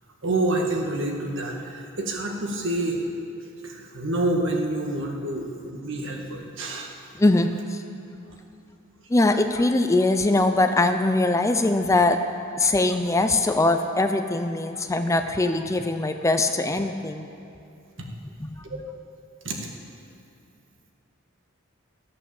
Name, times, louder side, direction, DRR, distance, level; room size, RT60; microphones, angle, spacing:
voice 1, 0.2-3.0 3.6-7.0 8.1-8.2 19.4-19.6, right 2 dB, 65° right, 1 dB, 1.7 m, -27 dB
voice 2, 7.2-7.8 9.1-12.2 12.6-17.3 18.4-18.6, left 2 dB, 15° left, 7 dB, 0.5 m, -22 dB
14.0 x 8.6 x 7.0 m, 2.6 s
head